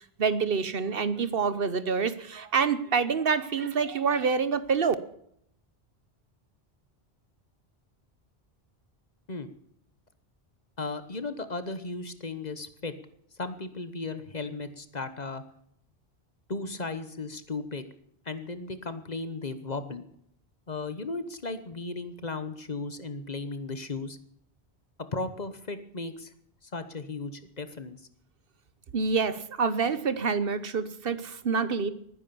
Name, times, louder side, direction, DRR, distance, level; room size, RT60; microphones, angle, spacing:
voice 1, 0.0-4.9 28.9-31.9, right 5 dB, 60° right, 14 dB, 1.1 m, -27 dB
voice 2, 10.8-12.9 13.4-15.4 16.5-17.8 18.2-20.0 20.7-24.2 25.1-26.3 26.6-28.0, left 3 dB, 40° left, 11 dB, 1.2 m, -35 dB
20.0 x 9.8 x 7.0 m, 0.69 s
omnidirectional pair, 1.1 m